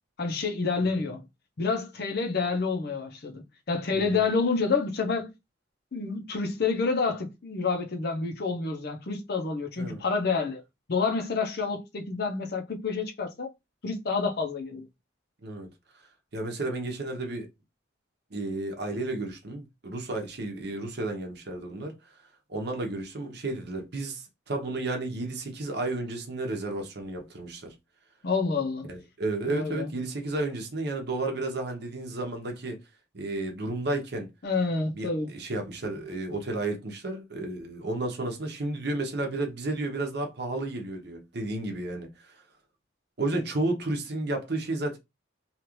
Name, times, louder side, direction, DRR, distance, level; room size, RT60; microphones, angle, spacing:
voice 1, 0.2-1.2 1.6-5.3 5.9-10.6 10.9-13.5 13.8-14.9 28.2-28.9 29.5-29.9 34.4-35.3, left 4 dB, 55° left, 0.6 m, -28 dB
voice 2, 3.9-4.2 9.8-10.0 15.4-15.7 16.3-17.5 18.3-21.9 22.5-27.7 28.9-32.8 33.1-34.3 34.9-42.1 43.2-45.0, right 2 dB, 55° right, 0.8 m, -32 dB
2.9 x 2.4 x 3.0 m
head